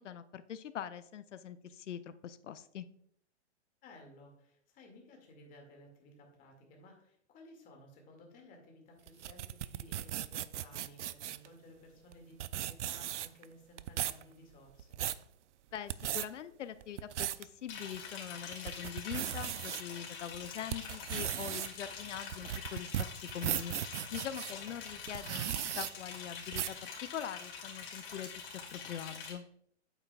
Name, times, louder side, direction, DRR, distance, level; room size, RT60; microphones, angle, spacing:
voice 1, 0.0-2.9 15.7-28.3 28.7-29.5, left 9 dB, 90° left, 13 dB, 0.6 m, -43 dB
voice 2, 3.8-15.0 24.6-24.7, left 1 dB, 25° left, 1 dB, 2.1 m, -57 dB
sound 1, 9.1-11.5 12.1-12.2 12.4-13.4 13.8-14.2 14.7-15.2 15.8-16.3 16.8-17.4 17.9-18.0 18.5-19.8 20.3-24.5 25.1-25.9 26.5-26.8, right 11 dB, 85° right, 0.5 m, -37 dB
Liquid, 17.7-29.3, left 6 dB, 50° left, 2.7 m, -45 dB
8.8 x 8.2 x 2.3 m, 0.69 s
hypercardioid pair, 140°, 35 cm